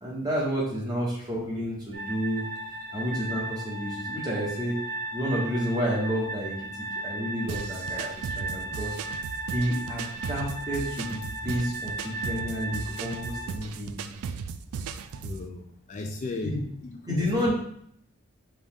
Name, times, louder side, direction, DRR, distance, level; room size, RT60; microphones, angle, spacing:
voice 1, 0.0-2.4 2.9-4.7 5.1-14.1 16.4-16.6 17.1-17.5, equal, 20° right, -4 dB, 1.2 m, -30 dB
sound 1, 1.9-13.5, right 2 dB, 50° right, 0.9 m, -36 dB
sound 2, 7.5-15.4, right 6 dB, 85° right, 0.3 m, -37 dB
voice 2, 15.2-16.6 16.8-17.5, left 2 dB, 35° left, 3 dB, 0.3 m, -35 dB
5.2 x 2.4 x 3.6 m, 0.70 s
head